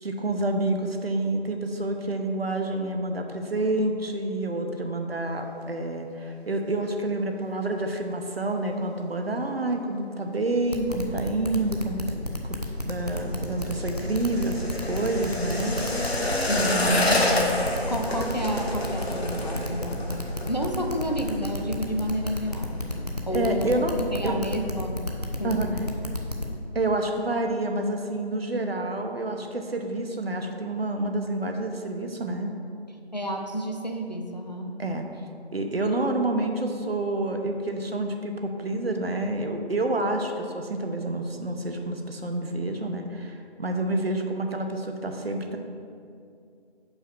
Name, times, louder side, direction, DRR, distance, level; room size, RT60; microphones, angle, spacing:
voice 1, 0.0-12.1 12.4-12.6 12.8-15.8 23.3-23.9 24.2-24.4 25.4-25.7 26.7-32.5 34.8-35.0 35.5-45.6, right 2 dB, 65° right, 4 dB, 0.8 m, -28 dB
sound 1, 10.7-26.5, left 1 dB, 40° right, 0.5 m, -31 dB
sound 2, 12.7-21.6 21.8-22.2 22.5-23.0 23.4-23.5, left 1 dB, 65° left, 1.2 m, -29 dB
voice 2, 16.5-23.7 24.0-25.1 25.4-25.7 33.1-34.8, equal, 40° left, 2 dB, 0.5 m, -30 dB
5.5 x 4.7 x 6.0 m, 2.4 s
figure-of-eight pair, 180°, 32 cm